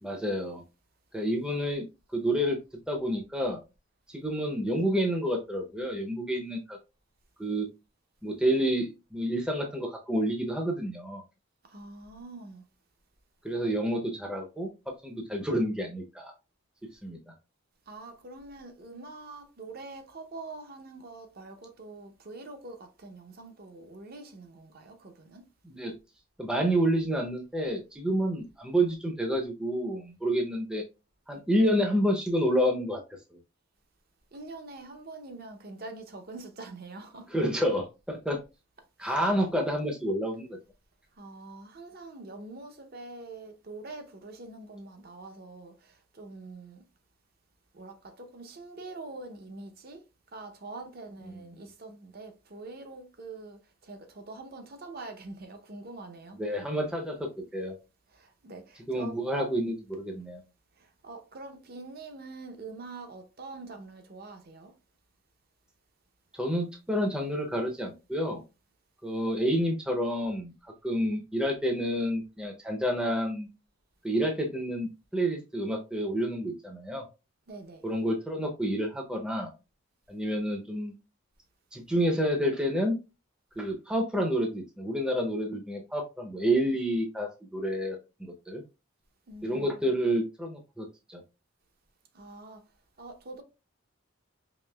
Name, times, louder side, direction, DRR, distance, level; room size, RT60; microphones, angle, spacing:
voice 1, 0.0-0.6 1.1-1.8 2.1-2.6 2.9-3.6 4.1-6.8 7.4-7.7 8.2-11.2 13.4-14.7 15.0-16.3 17.0-17.2 25.6-25.9 26.4-30.8 31.3-33.0 33.3-33.4 37.3-38.4 39.0-40.6 51.3-51.4 56.4-57.7 58.9-60.4 66.4-68.4 69.0-70.5 70.8-73.5 74.0-77.0 77.8-79.5 80.1-81.0 81.7-83.0 83.6-88.6 89.4-91.2, equal, 5° right, 0.5 m, -29 dB
voice 2, 11.6-12.6 17.9-25.5 34.3-37.3 39.0-39.3 41.2-46.8 47.7-50.0 50.3-56.7 58.1-59.2 60.8-64.7 77.5-77.8 89.3-89.9 92.1-92.7 93.0-93.4, right 3 dB, 45° right, 0.6 m, -45 dB
5.0 x 2.9 x 2.2 m
head